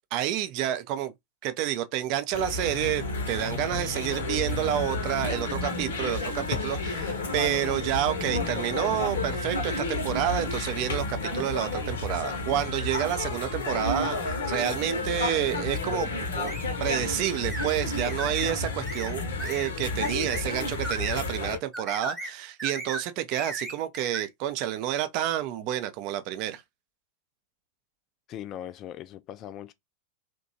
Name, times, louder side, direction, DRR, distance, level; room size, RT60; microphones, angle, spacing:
voice 1, 0.1-1.1 1.4-16.5 16.8-26.6, right 12 dB, 45° right, 0.4 m, -29 dB
sound 1, 2.3-21.6, left 3 dB, 65° left, 0.7 m, -31 dB
sound 2, 2.8-11.8, equal, 85° right, 0.9 m, -41 dB
sound 3, 16.5-16.7 17.5-17.7 18.0-18.5 18.9-19.1 19.4-19.7 20.0-20.4 20.8-21.2 21.7-22.3 22.6-23.0 23.3-24.3, right 2 dB, 10° right, 0.9 m, -36 dB
voice 2, 28.3-29.7, left 11 dB, 35° left, 0.3 m, -39 dB
2.8 x 2.2 x 2.7 m
figure-of-eight pair, 90°, 0 cm